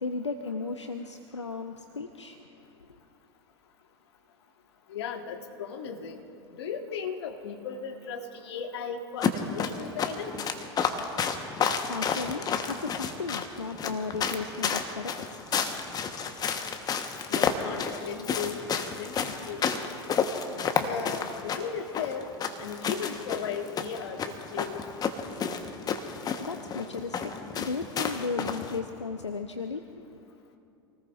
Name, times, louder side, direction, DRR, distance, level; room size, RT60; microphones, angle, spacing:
voice 1, 0.0-2.4 11.9-15.6 16.3-16.4 26.1-30.1, left 4 dB, 85° left, 7 dB, 0.7 m, -35 dB
voice 2, 4.9-6.2 6.5-10.5 17.3-19.7 20.8-22.3 22.6-24.8, left 6 dB, 65° left, 4 dB, 1.6 m, -36 dB
sound 1, 9.2-28.8, left 6 dB, 25° left, 1.2 m, -31 dB
27.5 x 19.0 x 2.6 m, 2.7 s
figure-of-eight pair, 85°, 15 cm